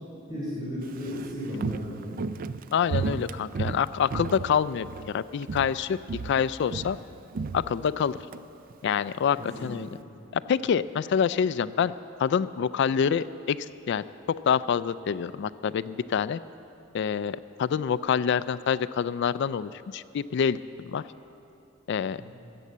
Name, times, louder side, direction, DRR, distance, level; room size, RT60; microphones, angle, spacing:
voice 1, 0.3-2.2 9.4-9.7 22.2-22.4, equal, 20° right, -8 dB, 3.2 m, -35 dB
Walk footsteps, 0.8-5.1 5.4-5.8 6.1-8.4 8.7-8.8, right 5 dB, 45° right, 0.3 m, -33 dB
voice 2, 2.7-6.0 6.2-7.0 7.5-8.2 8.8-9.9 10.3-11.9 12.2-13.6 13.9-14.0 14.5-16.4 16.9-20.6 20.9-21.0 21.9-22.2, left 7 dB, 60° left, 16 dB, 0.3 m, -26 dB
14.5 x 8.3 x 7.4 m, 2.7 s
head